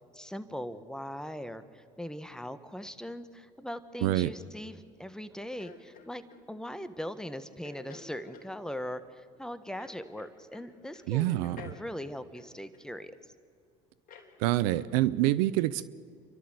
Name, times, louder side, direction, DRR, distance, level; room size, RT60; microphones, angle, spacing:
voice 1, 0.1-13.1, equal, 5° left, 12 dB, 1.4 m, -40 dB
voice 2, 4.0-4.3 11.1-11.7 14.4-15.9, right 16 dB, 75° right, 18 dB, 0.7 m, -26 dB
sound 1, 5.6-6.4 7.6-8.5 9.8-10.7 10.9-11.1 11.4-13.2 14.1-14.3 14.8-15.0, left 6 dB, 50° left, 3.4 m, -51 dB
28.5 x 12.5 x 8.1 m, 2.3 s
hypercardioid pair, 70°, 19 cm